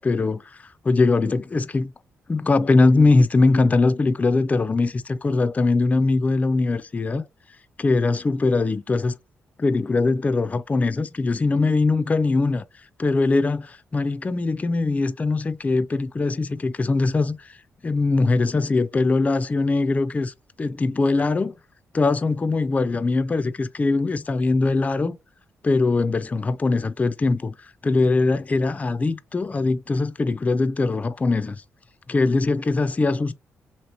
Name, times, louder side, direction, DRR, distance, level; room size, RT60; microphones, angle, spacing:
voice 1, 0.0-1.9 2.3-7.2 7.8-9.2 9.6-12.6 13.0-17.6 17.8-21.5 21.9-25.2 25.6-27.5 27.8-31.6 32.1-33.3, left 3 dB, 25° left, 0.3 m, -21 dB
2.9 x 2.9 x 2.8 m
supercardioid pair, 65°, 6 cm